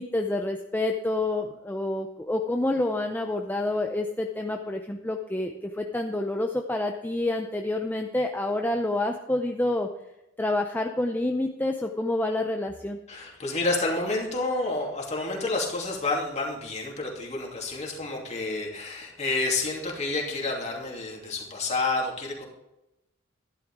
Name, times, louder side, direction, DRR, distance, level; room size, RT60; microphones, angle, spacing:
voice 1, 0.0-9.9 10.4-13.0, left 2 dB, 10° left, 3 dB, 0.6 m, -28 dB
voice 2, 13.1-22.5, left 2 dB, 35° left, -1 dB, 2.9 m, -29 dB
12.0 x 11.0 x 3.6 m, 0.92 s
head